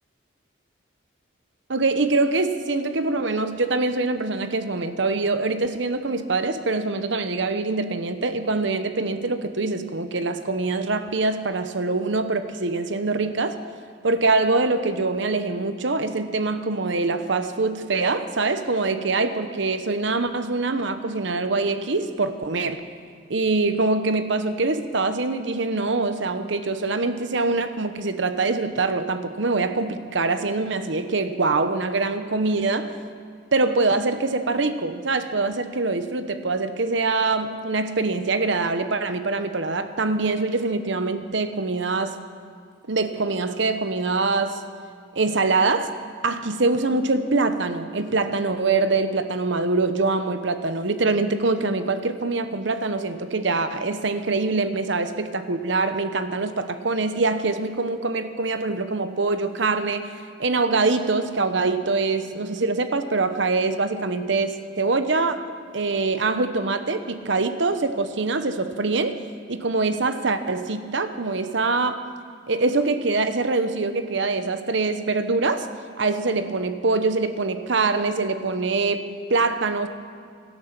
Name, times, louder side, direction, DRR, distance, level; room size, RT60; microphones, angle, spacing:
voice 1, 1.7-13.6 14.0-22.8 23.3-32.9 33.5-42.2 42.9-44.6 45.1-45.9 46.2-65.5 65.7-69.2 69.5-72.0 72.5-75.7 76.0-79.9, right 3 dB, 70° right, 10 dB, 0.9 m, -24 dB
17.5 x 12.5 x 6.0 m, 2.2 s
head